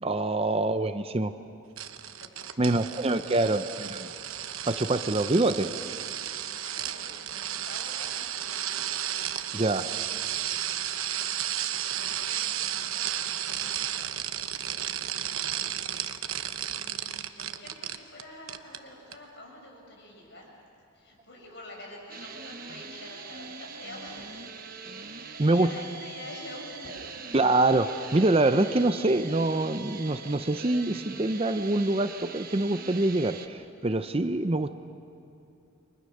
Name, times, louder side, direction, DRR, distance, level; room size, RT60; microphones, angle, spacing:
voice 1, 0.0-1.3 2.6-4.1 4.7-5.7 9.5-9.9 25.4-25.7 27.3-34.7, right 2 dB, 25° right, 10 dB, 0.6 m, -25 dB
sound 1, 1.8-18.2 18.5-18.8 19.1-19.2, right 11 dB, 75° right, 1.0 m, -33 dB
voice 2, 2.0-3.8 4.1-4.3 6.2-9.1 9.4-10.6 11.9-12.4 12.7-14.2 16.7-20.5 20.9-24.7 25.1-27.0, left 1 dB, 55° left, -1 dB, 6.7 m, -48 dB
sound 2, 22.1-33.5, right 4 dB, 45° right, 1.3 m, -42 dB
30.0 x 24.0 x 6.6 m, 2.7 s
head